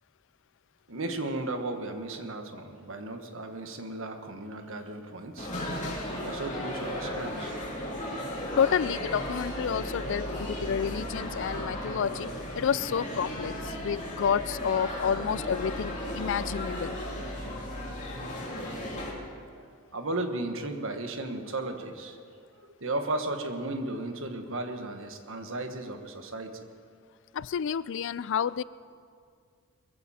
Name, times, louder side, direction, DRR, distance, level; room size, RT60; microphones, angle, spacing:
voice 1, 0.9-5.8 6.2-7.6 8.0-8.1 19.6-22.2 22.8-26.5, right 2 dB, 60° right, 6 dB, 1.4 m, -35 dB
sound 1, 5.4-19.1, equal, 35° left, 3.2 m, -35 dB
voice 2, 8.6-12.3 12.5-17.0 27.3-28.6, left 7 dB, 55° left, 18 dB, 0.4 m, -29 dB
22.0 x 14.5 x 4.3 m, 2.2 s
head